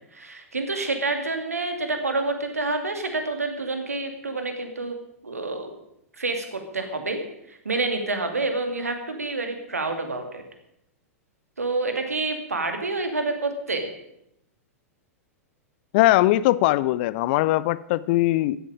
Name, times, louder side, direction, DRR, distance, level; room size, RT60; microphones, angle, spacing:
voice 1, 0.0-5.0 5.2-5.7 6.2-7.2 7.5-10.4 11.6-13.9, right 3 dB, 75° right, 2.3 m, -28 dB
voice 2, 15.9-18.6, left 17 dB, 40° left, 0.4 m, -20 dB
15.0 x 11.0 x 4.9 m
figure-of-eight pair, 100°, 8 cm